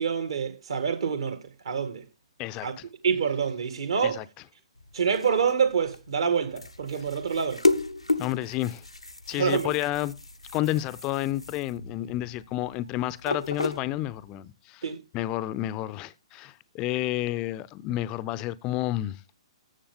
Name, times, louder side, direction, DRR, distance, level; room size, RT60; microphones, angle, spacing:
voice 1, 0.0-1.4 1.7-2.0 2.6-2.7 3.0-4.2 4.9-7.6 9.4-9.7 14.8-15.0, right 6 dB, 60° right, 1.9 m, -26 dB
voice 2, 2.4-2.9 4.0-4.3 8.2-8.8 9.3-10.2 10.5-14.8 15.1-19.2, left 15 dB, 25° left, 0.5 m, -30 dB
sound 1, 4.8-14.3, left 3 dB, 85° left, 0.7 m, -33 dB
14.0 x 7.1 x 3.7 m
figure-of-eight pair, 120°, 3 cm